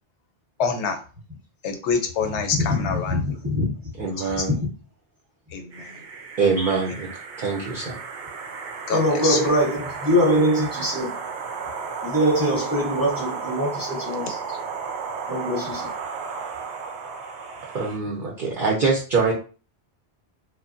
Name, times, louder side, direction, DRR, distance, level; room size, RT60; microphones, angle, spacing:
voice 1, 0.6-1.0 1.6-3.2 4.2-4.4 5.5-6.0 8.9-9.4 14.5-14.6, left 5 dB, 90° left, 0.9 m, -26 dB
voice 2, 2.6-4.7 8.9-11.1 12.0-14.4 15.3-15.9, equal, 20° right, 0.8 m, -23 dB
voice 3, 4.0-4.6 6.4-7.1 7.4-7.9 17.7-19.3, right 4 dB, 55° right, 0.7 m, -23 dB
sound 1, 5.7-18.0, right 5 dB, 85° right, 0.9 m, -33 dB
3.1 x 2.1 x 2.5 m
omnidirectional pair, 1.1 m